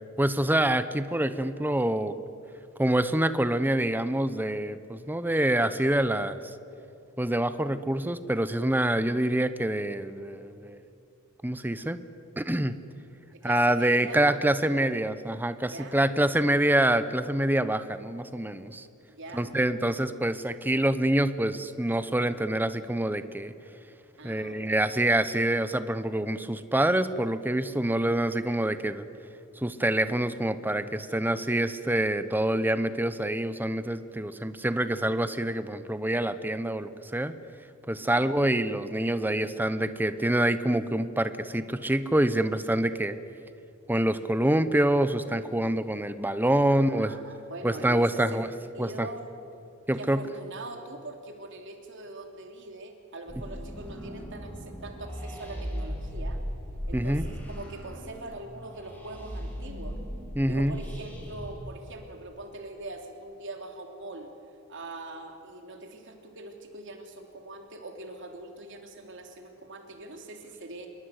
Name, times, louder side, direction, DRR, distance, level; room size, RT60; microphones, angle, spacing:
voice 1, 0.2-2.2 2.8-6.4 7.2-10.8 11.4-12.0 12.4-12.8 13.4-18.9 19.3-23.5 24.2-29.0 29.6-37.3 37.9-43.2 43.9-47.2 47.6-48.5 48.8-49.1 49.9-50.2 56.9-57.3 60.4-60.8, right 1 dB, 10° right, 12 dB, 0.9 m, -26 dB
voice 2, 13.3-14.3 15.6-16.0 19.1-19.6 24.2-24.9 38.0-38.4 46.7-48.5 48.7-49.2 49.9-56.4 56.9-60.0 60.4-64.3 64.7-70.9, right 2 dB, 60° right, 4 dB, 3.1 m, -42 dB
sound 1, 53.3-61.5, equal, 10° left, 5.8 m, -37 dB
27.0 x 22.5 x 8.2 m, 2.6 s
head